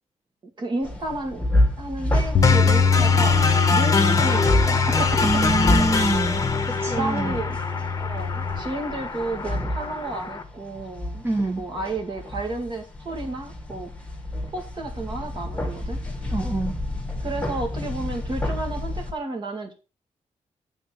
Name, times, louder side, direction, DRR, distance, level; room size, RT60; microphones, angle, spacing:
voice 1, 0.6-1.5 1.8-3.4 3.7-5.3 6.9-7.6 8.0-13.9 14.5-16.0 17.2-19.7, right 2 dB, 40° right, 3 dB, 2.1 m, -32 dB
sound 1, 0.8-19.1, left 1 dB, 10° left, 1.4 m, -29 dB
Bass guitar, 2.3-8.6, left 5 dB, 60° left, 0.6 m, -23 dB
sound 2, 2.4-10.4, left 4 dB, 25° left, 1.0 m, -25 dB
voice 2, 5.2-6.4 6.7-7.4 11.2-11.6 16.3-16.7, right 2 dB, 20° right, 1 dB, 1.2 m, -25 dB
8.9 x 4.0 x 6.5 m, 0.33 s
wide cardioid pair, 145°, 12 cm